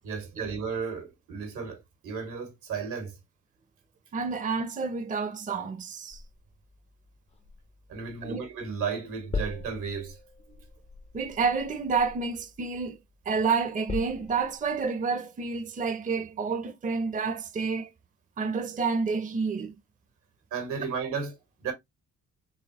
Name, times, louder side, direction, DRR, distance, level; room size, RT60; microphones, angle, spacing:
voice 1, 0.0-3.2 7.9-10.2 20.5-21.7, right 5 dB, 85° right, 1.8 m, -34 dB
voice 2, 4.1-6.2 8.2-8.4 11.1-13.0 13.3-17.9 18.4-19.7, right 5 dB, 25° right, 0.6 m, -29 dB
sound 1, 6.1-8.7 8.9-13.2 13.6-14.8, left 4 dB, 20° left, 0.5 m, -41 dB
4.0 x 3.3 x 2.8 m
cardioid pair, 90°, 30 cm